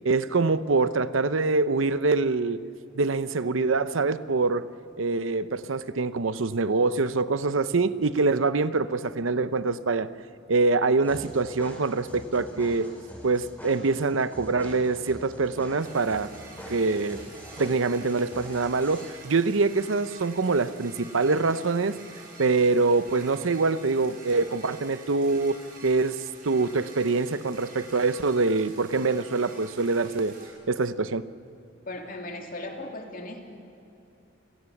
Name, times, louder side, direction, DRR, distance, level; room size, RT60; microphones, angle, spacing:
voice 1, 0.0-2.6 2.9-4.7 5.0-10.1 10.5-12.9 13.2-16.3 16.7-17.2 17.6-22.0 22.4-26.2 26.4-30.3 30.7-31.3, right 3 dB, 85° right, 14 dB, 0.8 m, -24 dB
sound 1, 11.0-19.0, left 1 dB, 10° left, 6.1 m, -44 dB
sound 2, 15.8-30.5, right 3 dB, 50° right, 5.5 m, -48 dB
voice 2, 31.9-33.5, left 2 dB, 50° left, 2 dB, 2.9 m, -37 dB
28.5 x 17.5 x 7.2 m, 2.9 s
head